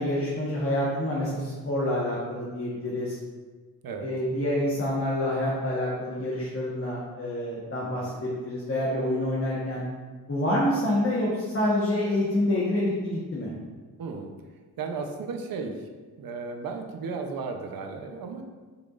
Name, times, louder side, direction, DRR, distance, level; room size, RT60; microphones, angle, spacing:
voice 1, 0.0-3.2 4.0-9.8 10.3-13.5, left 1 dB, 35° left, -6 dB, 1.4 m, -27 dB
voice 2, 7.8-8.1 14.0-14.3 14.8-15.9 16.2-18.4, right 4 dB, 70° right, 4 dB, 0.9 m, -35 dB
6.9 x 6.0 x 2.6 m, 1.4 s
cardioid pair, 105°, 36 cm